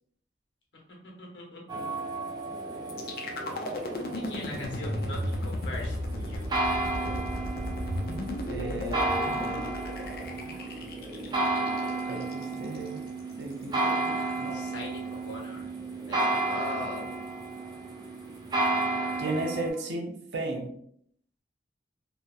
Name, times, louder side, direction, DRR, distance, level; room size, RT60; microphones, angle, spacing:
voice 1, 1.2-1.6 4.1-6.5 14.5-15.7 16.1-17.1, left 1 dB, 85° left, -2 dB, 0.8 m, -40 dB
sound 1, 1.7-19.7, right 2 dB, 25° right, 0.3 m, -32 dB
sound 2, 2.9-12.9, left 1 dB, 55° left, 0.4 m, -35 dB
voice 2, 8.5-9.7 12.1-13.0 13.4-14.6 19.2-20.7, right 2 dB, 85° right, 3 dB, 0.5 m, -35 dB
2.8 x 2.0 x 2.2 m, 0.69 s
head